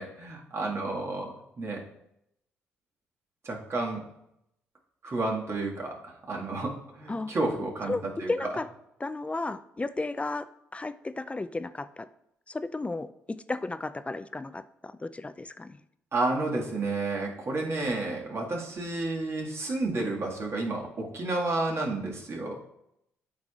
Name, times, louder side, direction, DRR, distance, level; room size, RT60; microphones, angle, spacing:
voice 1, 0.0-1.8 3.4-4.0 5.0-6.0 6.3-7.9 8.2-8.5 16.1-22.6, right 2 dB, 45° right, -1 dB, 1.9 m, -31 dB
voice 2, 8.3-8.7 9.0-10.5 10.7-12.1 12.5-15.8, left 2 dB, 20° left, 13 dB, 0.4 m, -34 dB
11.5 x 4.8 x 2.4 m, 0.80 s
hypercardioid pair, 45°, 6 cm